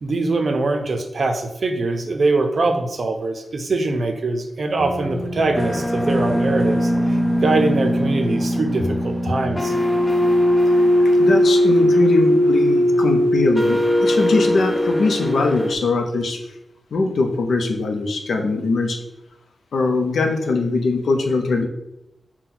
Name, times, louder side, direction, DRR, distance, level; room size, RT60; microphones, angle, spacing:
voice 1, 0.0-9.7, right 3 dB, 45° right, 5 dB, 0.5 m, -23 dB
sound 1, 4.8-15.8, equal, 10° left, 0.3 m, -19 dB
voice 2, 11.0-16.4 16.9-19.0 19.7-21.7, left 3 dB, 85° left, 4 dB, 0.5 m, -21 dB
5.9 x 2.2 x 3.8 m, 0.88 s
wide cardioid pair, 175°, 0 cm